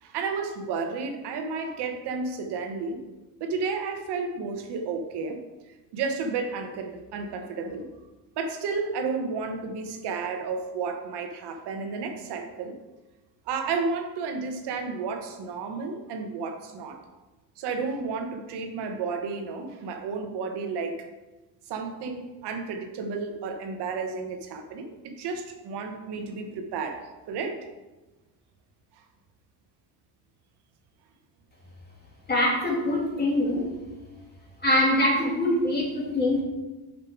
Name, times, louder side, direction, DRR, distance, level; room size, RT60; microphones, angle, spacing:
voice 1, 0.0-3.0 3.4-7.9 8.4-12.8 13.5-17.0 17.6-21.1 21.7-27.6, right 4 dB, 60° right, 5 dB, 1.3 m, -32 dB
voice 2, 32.3-33.7 34.6-36.4, left 1 dB, 20° left, -3 dB, 2.8 m, -23 dB
6.8 x 5.8 x 4.7 m, 1.1 s
supercardioid pair, 105°, 45 cm